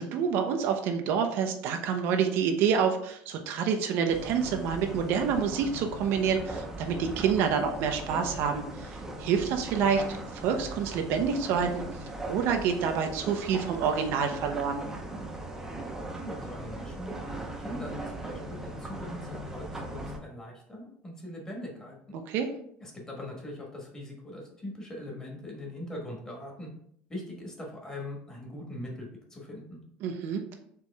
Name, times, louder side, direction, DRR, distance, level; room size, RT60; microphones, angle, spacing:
voice 1, 0.0-11.8 12.3-14.8 22.3-22.5 30.0-30.4, right 7 dB, 60° right, 5 dB, 0.6 m, -28 dB
sound 1, 4.1-20.2, right 1 dB, 10° right, 0.7 m, -39 dB
voice 2, 16.1-19.2 19.5-22.0 22.8-26.7 27.1-29.8, left 1 dB, 15° left, -1 dB, 1.3 m, -41 dB
4.6 x 3.0 x 3.4 m, 0.67 s
cardioid pair, 130°, 4 cm